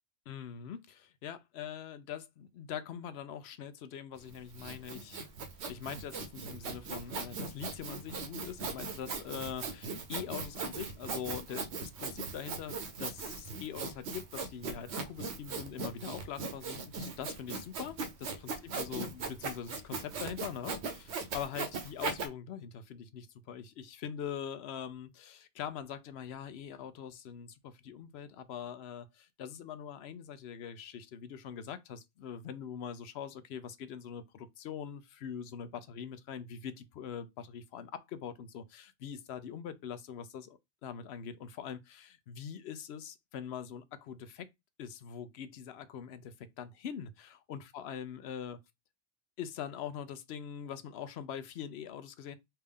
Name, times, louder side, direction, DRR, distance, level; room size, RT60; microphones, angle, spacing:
voice 1, 0.3-5.3 5.7-44.5 44.8-48.6 49.4-52.4, left 8 dB, 80° left, 0.8 m, -43 dB
Sawing, 4.2-22.3, right 4 dB, 85° right, 1.0 m, -39 dB
3.4 x 2.7 x 3.5 m
omnidirectional pair, 1.1 m